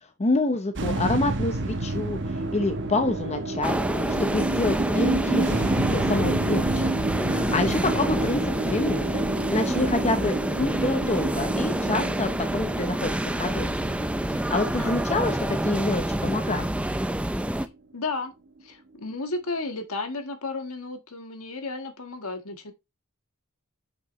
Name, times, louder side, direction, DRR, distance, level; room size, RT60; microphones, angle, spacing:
voice 1, 0.2-2.2 2.5-5.6 5.9-6.9 7.2-13.1 13.4-13.9 14.3-16.7, left 2 dB, 30° left, 0.8 m, -27 dB
sound 1, 0.8-17.2, right 2 dB, 55° right, 1.0 m, -30 dB
sound 2, 3.6-17.7, right 1 dB, 5° right, 0.5 m, -27 dB
voice 2, 7.6-8.0 14.6-15.0 17.9-18.3 18.6-22.7, left 3 dB, 70° left, 1.6 m, -33 dB
8.6 x 6.0 x 3.1 m
head